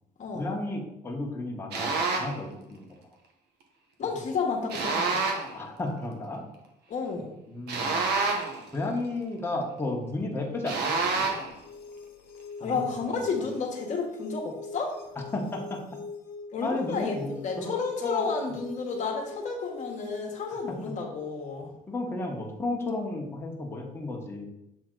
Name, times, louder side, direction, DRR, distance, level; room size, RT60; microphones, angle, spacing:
voice 1, 0.3-2.9 5.5-6.5 7.5-8.1 8.7-11.3 12.6-12.8 13.2-13.3 15.1-15.8 16.6-17.7 18.0-18.3 20.7-21.0 21.9-24.5, left 2 dB, 15° left, -2 dB, 1.3 m, -33 dB
sound 1, 1.7-2.4 4.7-5.6 7.7-8.7 10.7-11.5, right 4 dB, 75° right, 1.2 m, -28 dB
voice 2, 4.0-5.2 6.9-7.3 12.6-14.9 16.5-21.7, left 4 dB, 45° left, 0 dB, 1.3 m, -31 dB
sound 2, 11.0-21.0, left 4 dB, 80° left, 1.0 m, -44 dB
7.5 x 3.8 x 3.9 m, 0.86 s
cardioid pair, 110°, 17 cm